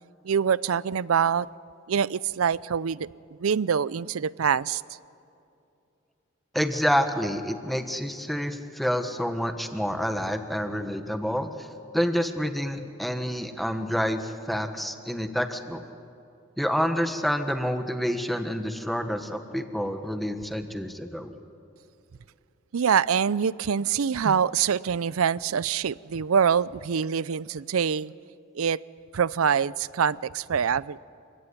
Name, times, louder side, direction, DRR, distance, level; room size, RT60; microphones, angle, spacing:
voice 1, 0.2-1.5 1.9-3.1 3.4-4.8 22.7-28.1 28.5-28.8 29.1-31.0, right 7 dB, 85° right, 0.5 m, -25 dB
voice 2, 6.5-11.7 11.9-15.8 16.6-21.3, equal, ahead, 1.3 m, -28 dB
28.5 x 17.0 x 9.7 m
head